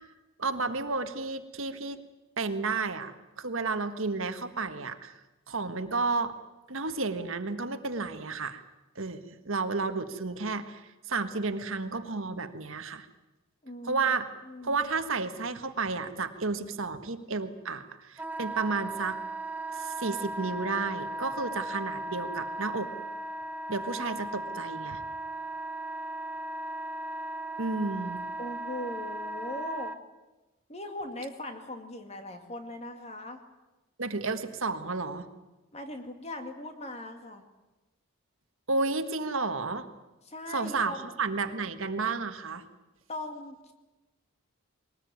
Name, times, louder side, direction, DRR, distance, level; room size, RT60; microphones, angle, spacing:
voice 1, 0.4-2.0 2.4-5.1 5.5-6.3 6.7-8.6 8.9-10.8 11.1-13.1 13.8-14.2 14.6-19.2 19.7-22.9 23.7-25.0 27.6-28.2 34.0-35.3 38.7-39.9 40.5-42.6, right 3 dB, 65° right, 9 dB, 1.6 m, -32 dB
voice 2, 13.6-14.2 14.4-14.8 28.4-29.9 30.7-33.4 35.7-37.4 40.2-41.0 43.1-43.7, left 1 dB, 30° left, 6 dB, 2.4 m, -40 dB
Wind instrument woodwind instrument, 18.2-30.0, right 2 dB, 10° right, 0.8 m, -37 dB
22.0 x 19.0 x 9.4 m, 1.1 s
head